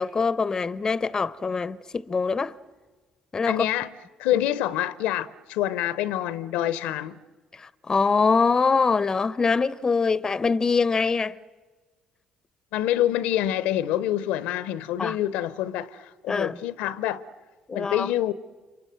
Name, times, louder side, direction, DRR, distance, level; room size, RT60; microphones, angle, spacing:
voice 1, 0.0-2.6 3.3-3.7 7.5-11.4 15.0-15.2 16.3-16.6 17.7-18.1, left 4 dB, 30° left, 0.7 m, -24 dB
voice 2, 3.5-3.9 4.2-7.2 12.7-17.2 17.7-18.3, left 12 dB, 70° left, 0.8 m, -26 dB
30.0 x 25.5 x 7.8 m
hypercardioid pair, 50°, 2 cm